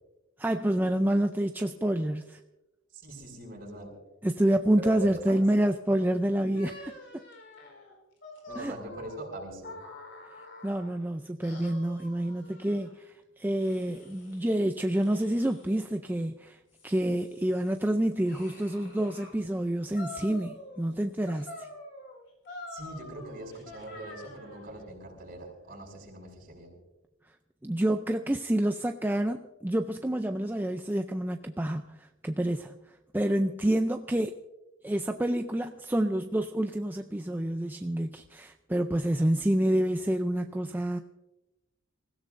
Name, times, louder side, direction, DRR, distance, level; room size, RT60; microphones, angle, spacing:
voice 1, 0.4-2.4 4.2-6.9 8.6-8.7 10.6-21.7 27.6-32.8 33.1-34.4 34.8-41.0, right 1 dB, 10° right, 6 dB, 0.4 m, -28 dB
voice 2, 2.9-3.9 4.8-5.4 8.5-9.7 22.7-26.8, right 2 dB, 45° right, 0 dB, 6.5 m, -41 dB
sound 1, 6.5-11.0 11.4-12.9 13.6-14.5 14.9-15.9 16.5-19.3 19.9-20.9 21.3-24.7, left 2 dB, 65° left, 4.2 m, -47 dB
26.5 x 16.5 x 2.6 m, 1.0 s
head